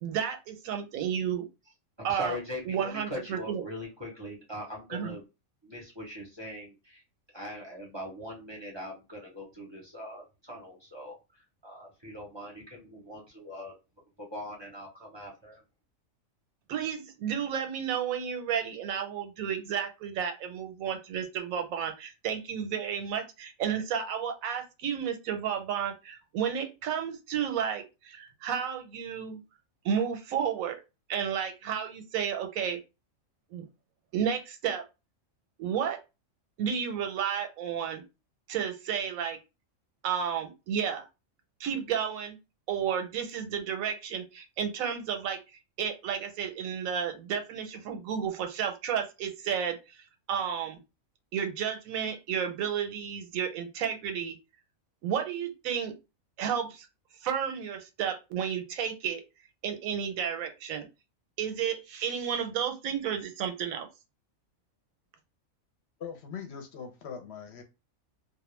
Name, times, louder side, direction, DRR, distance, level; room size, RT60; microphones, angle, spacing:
voice 1, 0.0-1.4 2.0-2.4 2.7-3.6 4.9-5.1 16.7-29.4 29.8-30.8 31.1-32.8 33.5-33.7 34.1-34.8 35.6-36.0 36.6-38.0 38.5-39.4 40.0-41.0 41.6-42.4 42.7-45.4 45.8-50.0 50.3-50.8 51.3-54.4 55.0-55.9 56.4-56.9 57.2-59.2 59.6-60.9 61.4-63.9, right 8 dB, 85° right, 6 dB, 1.0 m, -32 dB
voice 2, 2.0-5.2 5.6-7.0 7.3-13.7 14.3-15.6, left 1 dB, 30° right, -2 dB, 0.5 m, -41 dB
voice 3, 66.0-67.6, left 7 dB, 60° left, 4 dB, 0.8 m, -41 dB
2.3 x 2.1 x 3.0 m, 0.27 s
omnidirectional pair, 1.4 m